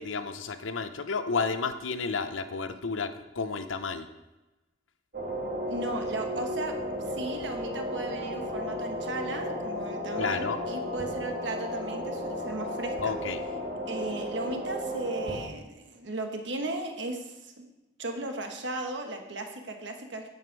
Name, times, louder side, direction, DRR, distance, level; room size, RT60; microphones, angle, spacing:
voice 1, 0.0-4.1 10.2-10.6 13.0-13.4, left 4 dB, 85° left, 10 dB, 0.7 m, -31 dB
sound 1, 5.1-15.4, equal, 50° right, 2.0 m, -34 dB
voice 2, 5.7-6.8 7.0-13.1 13.8-17.7 18.0-20.3, right 2 dB, 65° right, 4 dB, 1.3 m, -36 dB
sound 2, 11.0-11.9 12.4-12.5 12.7-13.5 13.9-14.2 14.5-14.6 15.1-15.7 16.1-16.2, equal, 30° left, 1.8 m, -46 dB
9.3 x 7.2 x 4.7 m, 1.0 s
head